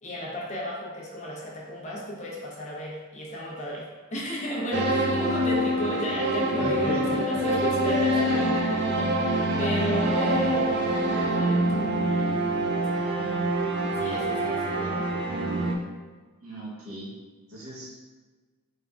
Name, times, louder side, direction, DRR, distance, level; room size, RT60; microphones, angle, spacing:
voice 1, 0.0-10.7 11.2-13.4 13.9-15.5, equal, 35° left, -3 dB, 0.7 m, -34 dB
sound 1, 4.7-15.7, right 1 dB, 55° right, 0.4 m, -25 dB
voice 2, 6.5-7.2 16.4-17.1 17.5-17.9, equal, 85° right, -5 dB, 1.0 m, -37 dB
3.6 x 3.5 x 2.3 m, 1.3 s
head